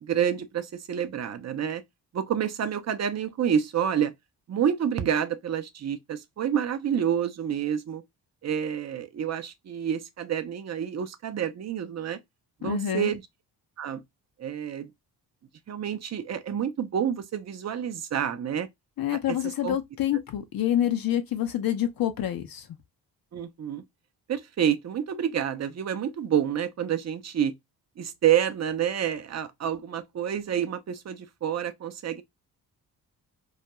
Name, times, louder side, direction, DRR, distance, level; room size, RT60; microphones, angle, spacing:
voice 1, 0.0-1.8 2.1-4.1 4.5-8.0 8.4-12.2 12.6-13.2 13.8-14.0 14.4-14.9 15.7-18.7 19.1-19.4 19.6-19.8 23.3-23.8 24.3-27.5 28.0-32.2, right 9 dB, 40° right, 0.5 m, -28 dB
voice 2, 12.6-13.1 19.0-22.7, left 11 dB, 60° left, 0.5 m, -27 dB
2.3 x 2.1 x 2.8 m
cardioid pair, 75°, 41 cm